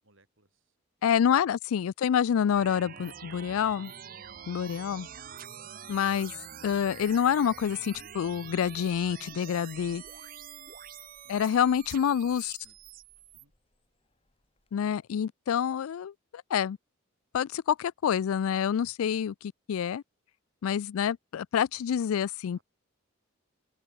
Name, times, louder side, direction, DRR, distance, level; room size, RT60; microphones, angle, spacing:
voice 1, 0.0-1.2 1.7-1.9 11.2-11.4 12.0-12.8 13.3-13.5 22.5-22.6, right 1 dB, 70° right, 6.7 m, -67 dB
voice 2, 1.0-3.9 4.5-5.1 5.9-6.3 6.6-10.0 11.3-12.5 14.7-16.8 17.3-20.0 20.6-22.6, left 8 dB, 85° left, 0.3 m, -27 dB
sound 1, 2.5-13.4, right 8 dB, 40° right, 0.6 m, -46 dB
Zipper (clothing), 3.1-14.9, left 1 dB, 25° left, 5.9 m, -67 dB
open air
head